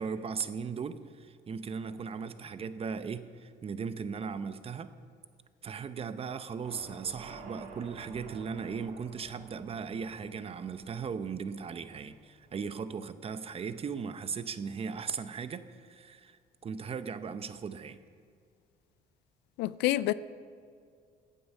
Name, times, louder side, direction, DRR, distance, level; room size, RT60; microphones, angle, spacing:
voice 1, 0.0-4.9 5.6-16.4 16.6-18.0, right 6 dB, 35° right, 0.7 m, -37 dB
sound 1, 6.6-12.7, right 4 dB, 65° right, 2.4 m, -51 dB
voice 2, 19.6-20.1, left 16 dB, 90° left, 0.4 m, -27 dB
15.0 x 9.3 x 5.5 m
cardioid pair, 110°, 17 cm